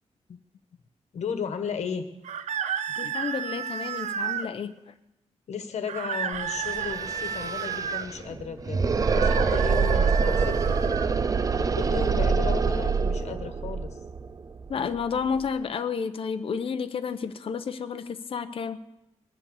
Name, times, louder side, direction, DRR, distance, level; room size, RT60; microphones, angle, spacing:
voice 1, 1.1-2.0 5.5-8.8 9.1-10.8 11.6-14.0, left 6 dB, 75° left, 8 dB, 1.6 m, -34 dB
sound 1, 2.2-4.5 5.9-8.1 9.0-11.1, right 8 dB, 85° right, 0.6 m, -32 dB
voice 2, 3.0-4.7 14.7-18.8, left 6 dB, 50° left, 9 dB, 0.9 m, -31 dB
sound 2, 6.3-6.4 6.6-15.4, right 5 dB, 30° right, 0.5 m, -25 dB
21.0 x 7.8 x 7.2 m, 0.89 s
wide cardioid pair, 160°, 12 cm